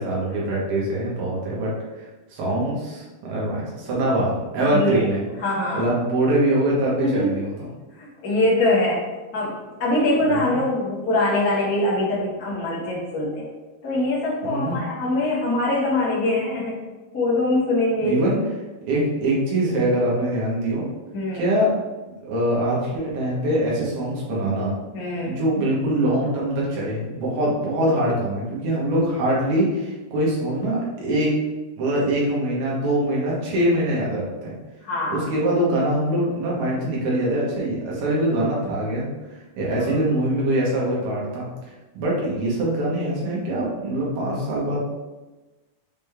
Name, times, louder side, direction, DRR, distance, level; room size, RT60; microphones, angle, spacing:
voice 1, 0.0-5.2 5.7-7.7 10.3-10.6 14.4-14.8 18.0-18.4 18.9-20.9 21.3-21.7 22.1-24.7 25.3-31.3 31.8-34.5 35.1-39.1 39.6-41.5 42.0-44.8, right 1 dB, 75° right, -5 dB, 3.6 m, -23 dB
voice 2, 4.7-5.1 5.4-5.9 7.0-7.4 7.9-9.0 9.3-13.5 13.8-16.8 17.1-18.2 21.1-21.5 24.9-25.4 34.8-35.2 39.8-39.9, left 1 dB, 40° left, -7 dB, 1.3 m, -23 dB
7.3 x 3.9 x 3.7 m, 1.2 s
omnidirectional pair, 4.5 m